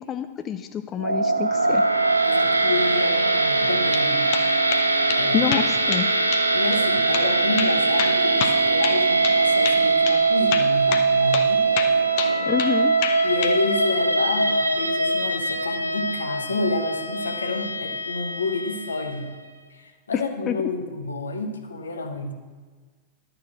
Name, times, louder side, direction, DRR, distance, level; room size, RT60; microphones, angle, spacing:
voice 1, 0.0-1.8 5.3-6.1 12.5-12.9 20.1-20.6, left 9 dB, 30° left, 8 dB, 0.5 m, -27 dB
sound 1, 1.0-19.2, right 3 dB, 90° right, 0.6 m, -22 dB
voice 2, 2.2-4.3 5.1-5.4 6.5-11.7 13.2-19.3 19.7-22.3, left 2 dB, 75° left, 5 dB, 1.0 m, -29 dB
sound 2, 3.7-4.1 4.3-4.8 5.1-5.2 5.5-6.1 6.3-6.5 6.7-6.8 7.1-7.3 7.6-9.4 9.6-9.8 10.1-10.2 10.5-11.1 11.3-11.5 11.8-12.7 13.0-13.6, left 9 dB, 50° left, 0.8 m, -28 dB
11.0 x 6.8 x 6.1 m, 1.4 s
figure-of-eight pair, 90°, 0 cm